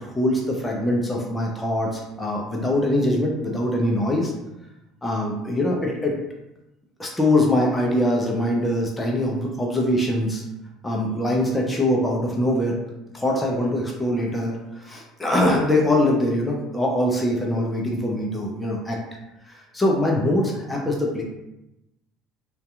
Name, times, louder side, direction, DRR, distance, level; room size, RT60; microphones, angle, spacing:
voice 1, 0.0-4.3 5.0-6.1 7.0-10.4 10.8-12.8 13.1-19.0 19.4-21.2, left 1 dB, 15° left, -1 dB, 0.5 m, -23 dB
2.6 x 2.3 x 2.4 m, 0.94 s
hypercardioid pair, 70°, 0 cm